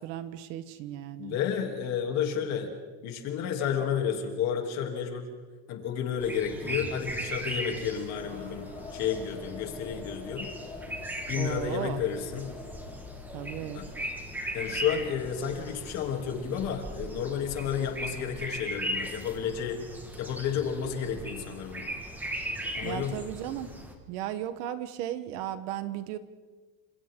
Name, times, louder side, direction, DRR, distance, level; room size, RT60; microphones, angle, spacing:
voice 1, 0.0-1.4 11.3-12.0 13.3-13.8 22.8-23.7 24.1-26.2, right 11 dB, 50° right, 12 dB, 1.2 m, -35 dB
voice 2, 1.2-2.7 3.0-5.3 5.7-10.5 11.3-12.5 13.7-13.9 14.5-19.8 20.2-21.9 22.7-23.2, left 8 dB, 40° left, 3 dB, 3.0 m, -31 dB
sound 1, 6.2-23.9, right 1 dB, 5° right, 1.7 m, -38 dB
sound 2, 8.1-14.0, left 4 dB, 15° left, 1.8 m, -47 dB
30.0 x 27.0 x 3.8 m, 1.4 s
cardioid pair, 175°, 42 cm